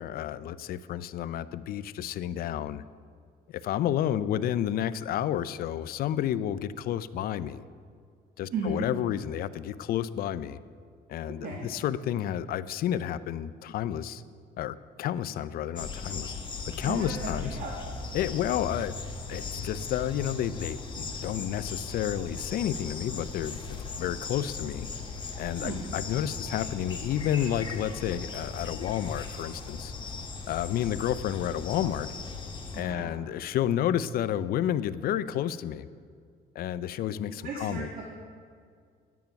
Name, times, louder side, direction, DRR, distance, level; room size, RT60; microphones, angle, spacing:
voice 1, 0.0-2.8 3.5-7.6 8.4-10.6 11.1-14.2 14.6-16.3 16.7-17.6 18.1-18.9 19.3-23.6 24.0-24.9 25.4-29.9 30.5-32.1 32.7-35.9 36.6-37.9, left 11 dB, 60° left, 15 dB, 0.5 m, -30 dB
voice 2, 8.5-8.8 11.4-11.7 16.8-17.7 25.6-25.8 32.7-33.1 37.4-38.0, right 4 dB, 60° right, -2 dB, 1.6 m, -35 dB
sound 1, 15.8-32.8, left 4 dB, 30° left, 1.4 m, -38 dB
10.5 x 9.2 x 5.8 m, 2.2 s
cardioid pair, 110°, 17 cm